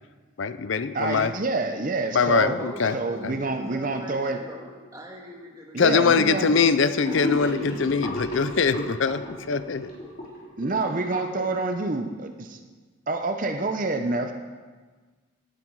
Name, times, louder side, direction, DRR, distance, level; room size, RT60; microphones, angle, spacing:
voice 1, 0.4-1.3 2.1-3.0 3.2-3.4 5.8-9.9, left 5 dB, 70° left, 13 dB, 0.5 m, -23 dB
voice 2, 0.9-2.6 2.9-4.4 5.7-6.5 10.6-12.6 13.1-14.3, right 3 dB, 40° right, 6 dB, 0.7 m, -27 dB
voice 3, 2.6-7.9 11.1-11.5, right 1 dB, 15° right, -1 dB, 2.0 m, -41 dB
Gurgling / Sink (filling or washing), 7.0-11.5, left 1 dB, 45° left, 3.3 m, -33 dB
17.5 x 9.4 x 4.7 m, 1.4 s
head